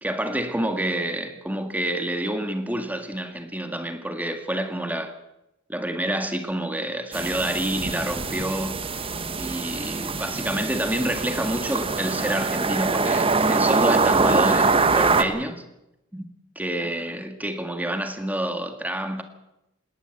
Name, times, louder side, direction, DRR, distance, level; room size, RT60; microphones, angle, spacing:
voice 1, 0.0-5.2 5.7-8.8 9.4-15.6 16.1-16.3 16.6-19.2, right 1 dB, 10° right, 1.9 m, -28 dB
sound 1, 7.1-15.2, right 4 dB, 25° right, 1.2 m, -23 dB
19.0 x 18.5 x 7.9 m
head